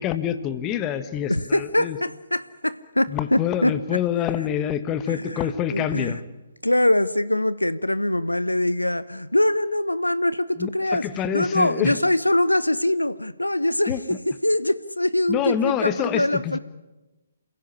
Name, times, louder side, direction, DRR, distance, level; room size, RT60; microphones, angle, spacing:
voice 1, 0.0-2.0 3.1-6.2 10.6-12.0 13.9-14.0 15.3-16.6, left 9 dB, 20° left, 1.5 m, -26 dB
voice 2, 1.3-3.7 5.1-5.4 5.7-6.2 6.6-11.0 11.3-14.2 14.4-16.6, left 1 dB, 85° left, 0.9 m, -23 dB
28.0 x 16.5 x 10.0 m
figure-of-eight pair, 135°, 0 cm